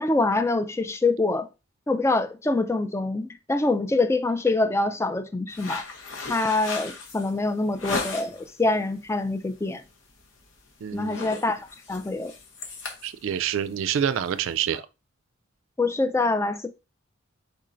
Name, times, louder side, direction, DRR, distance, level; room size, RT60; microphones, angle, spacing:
voice 1, 0.0-1.5 1.9-5.8 6.3-9.8 10.9-12.3 15.8-16.7, left 2 dB, 15° left, 0.3 m, -25 dB
sound 1, 5.5-8.5 9.0-9.3 9.7-9.9 10.2-10.6 10.9-14.8, left 4 dB, 65° left, 1.0 m, -36 dB
voice 2, 10.8-11.3 13.0-14.8, right 9 dB, 65° right, 0.3 m, -27 dB
4.6 x 4.2 x 2.5 m
head